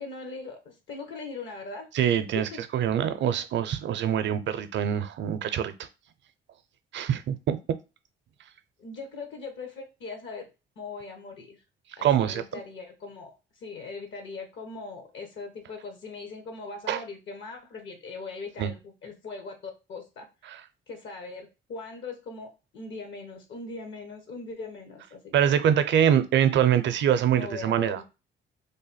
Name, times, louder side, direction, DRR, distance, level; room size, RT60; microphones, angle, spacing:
voice 1, 0.0-1.9 2.3-2.6 8.8-10.5 10.8-11.6 12.0-20.3 20.9-25.6 27.3-28.0, left 4 dB, 70° left, 1.0 m, -40 dB
voice 2, 1.9-5.7 6.9-7.6 12.0-12.4 16.9-17.0 18.6-18.7 25.3-28.0, right 9 dB, 70° right, 0.5 m, -24 dB
3.3 x 2.2 x 4.1 m
cardioid pair, 90°, 20 cm